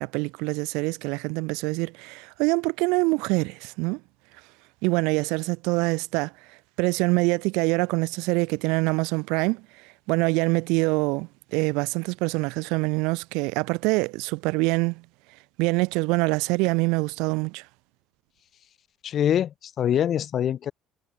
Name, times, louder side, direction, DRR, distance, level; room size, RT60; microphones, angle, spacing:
voice 1, 0.0-4.0 4.8-6.3 6.8-15.0 15.6-17.6, right 27 dB, 75° right, 0.8 m, -25 dB
voice 2, 19.0-20.7, left 10 dB, 55° left, 3.9 m, -24 dB
hypercardioid pair, 65°, 0 cm